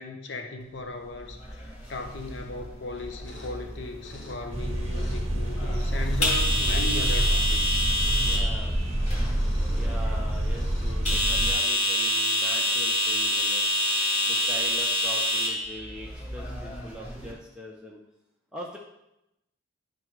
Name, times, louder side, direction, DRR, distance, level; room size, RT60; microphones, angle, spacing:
voice 1, 0.0-7.8, left 2 dB, 60° left, 4 dB, 0.8 m, -37 dB
sound 1, 1.2-17.3, left 1 dB, 35° left, 2.4 m, -28 dB
sound 2, 3.2-11.0, left 1 dB, 80° left, 1.8 m, -48 dB
sound 3, 4.5-11.5, right 1 dB, 35° right, 1.3 m, -27 dB
voice 2, 8.2-8.8 9.7-13.7 14.2-18.0 18.5-18.8, equal, 5° right, -3 dB, 0.7 m, -42 dB
11.0 x 3.8 x 4.6 m, 0.88 s
head